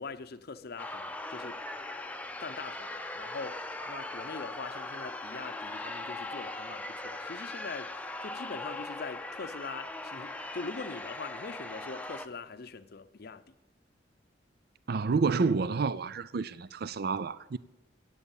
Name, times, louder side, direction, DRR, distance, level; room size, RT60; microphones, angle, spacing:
voice 1, 0.0-1.6 2.4-13.4, left 4 dB, 55° left, 0.7 m, -42 dB
sound 1, 0.8-12.3, left 2 dB, 10° left, 0.6 m, -40 dB
voice 2, 14.9-17.6, right 4 dB, 55° right, 0.5 m, -29 dB
17.0 x 8.0 x 7.2 m
head